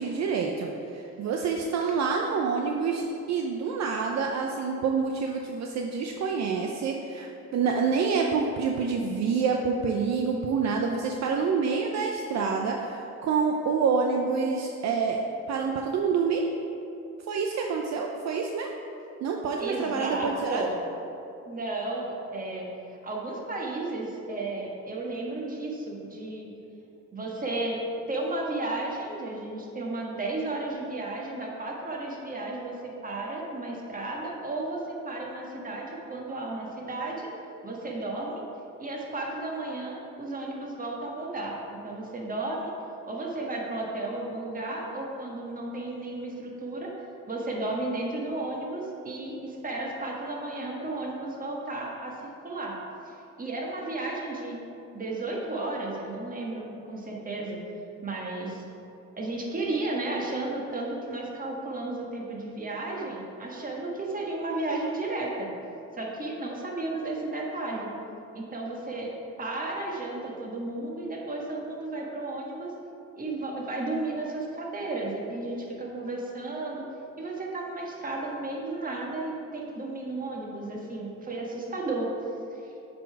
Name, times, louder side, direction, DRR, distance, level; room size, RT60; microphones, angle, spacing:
voice 1, 0.0-15.2 15.5-16.4 17.3-18.7 19.2-20.6, right 5 dB, 60° right, 1 dB, 0.6 m, -27 dB
voice 2, 19.6-20.8 21.4-26.5 27.1-27.8 28.1-37.3 37.6-38.4 38.8-42.7 43.1-46.9 47.3-52.7 53.0-54.6 54.9-57.6 58.0-58.6 59.1-65.5 65.9-67.9 68.3-69.1 69.4-72.7 73.1-76.9 77.2-82.1 82.5-82.7, right 2 dB, 30° right, -2 dB, 1.4 m, -33 dB
7.4 x 4.0 x 4.6 m, 2.7 s
cardioid pair, 90°, 30 cm